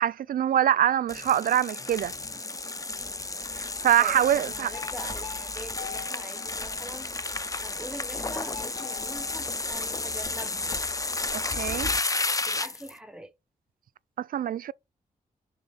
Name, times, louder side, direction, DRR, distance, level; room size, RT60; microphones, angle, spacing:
voice 1, 0.0-2.1 3.6-4.7 11.3-11.9 14.2-14.7, right 10 dB, 70° right, 0.4 m, -24 dB
sound 1, 1.1-12.9, left 3 dB, 20° left, 0.6 m, -32 dB
voice 2, 4.0-7.1 7.6-10.8 12.4-13.3, equal, 5° right, 0.9 m, -43 dB
sound 2, 4.7-7.4 8.5-10.3, left 6 dB, 40° left, 1.7 m, -44 dB
5.4 x 3.5 x 5.4 m
cardioid pair, 75°, 15 cm